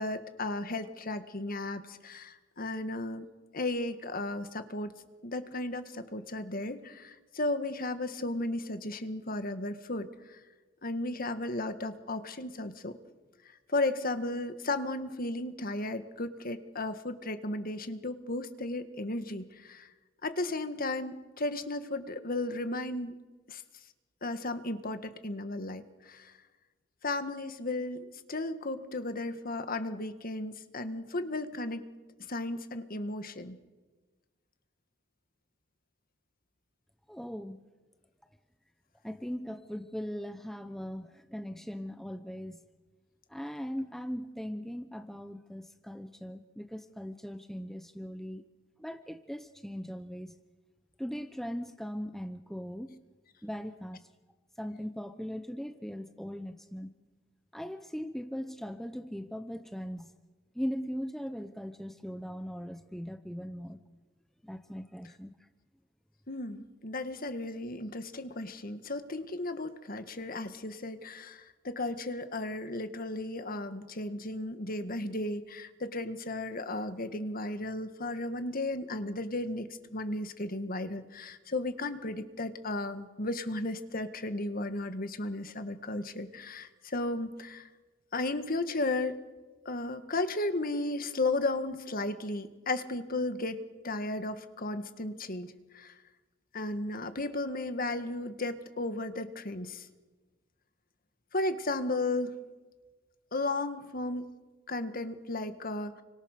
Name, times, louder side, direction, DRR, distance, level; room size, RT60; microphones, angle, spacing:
voice 1, 0.0-3.3 3.5-4.9 5.2-10.4 10.8-13.0 13.7-19.9 20.2-23.2 23.5-23.6 24.2-26.3 27.0-31.8 32.3-33.6 66.3-87.7 88.1-89.2 89.7-93.6 93.8-95.9 96.5-99.9 101.3-102.4 103.3-104.2 104.7-106.0, left 2 dB, 50° left, 9 dB, 1.8 m, -34 dB
voice 2, 37.1-37.6 39.0-42.6 43.3-48.4 48.8-50.4 51.0-53.0 53.4-54.1 54.6-56.9 57.5-60.1 60.5-63.8 64.4-65.5, equal, ahead, 9 dB, 0.8 m, -39 dB
29.0 x 25.0 x 6.7 m, 1.3 s
head